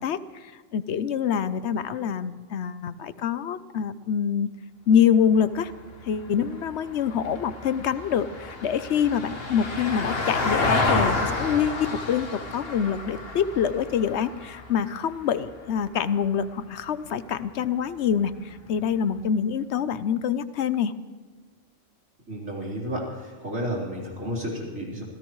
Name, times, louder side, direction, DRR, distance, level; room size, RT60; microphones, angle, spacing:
voice 1, 0.0-4.5 4.9-5.7 6.0-20.9, left 8 dB, 65° left, 14 dB, 0.9 m, -25 dB
Vehicle, 5.4-15.8 18.1-18.2, left 2 dB, 50° left, 1.7 m, -30 dB
voice 2, 22.3-25.0, equal, 85° right, -4 dB, 4.3 m, -32 dB
26.0 x 16.5 x 3.1 m, 1.5 s
omnidirectional pair, 1.3 m